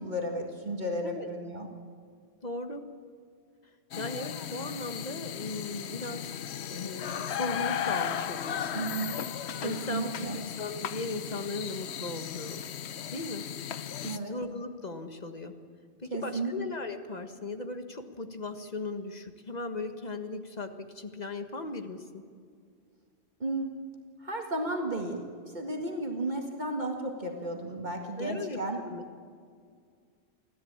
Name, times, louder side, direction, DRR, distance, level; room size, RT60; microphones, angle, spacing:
voice 1, 0.0-1.7 8.7-9.2 9.6-10.4 14.0-14.3 16.1-16.5 23.4-23.7 24.2-28.8, right 2 dB, 45° right, 1 dB, 2.0 m, -33 dB
voice 2, 2.4-2.8 4.0-6.3 6.7-8.8 9.6-12.7 13.1-13.5 14.0-15.6 16.0-22.2 28.2-28.6 28.8-29.2, left 2 dB, 40° left, 7 dB, 1.6 m, -37 dB
sound 1, 3.9-14.2, left 9 dB, 80° left, 1.0 m, -36 dB
25.5 x 16.0 x 8.8 m, 2.1 s
omnidirectional pair, 1.1 m